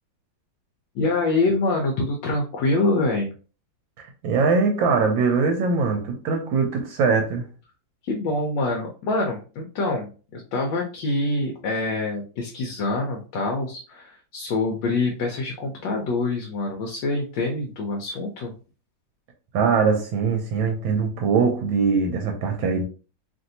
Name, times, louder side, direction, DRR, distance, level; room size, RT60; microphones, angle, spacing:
voice 1, 0.9-3.3 8.0-18.5, left 2 dB, 75° left, 1.2 m, -25 dB
voice 2, 4.0-7.5 19.5-22.8, right 5 dB, 80° right, 1.3 m, -22 dB
3.2 x 2.6 x 2.6 m
omnidirectional pair, 2.1 m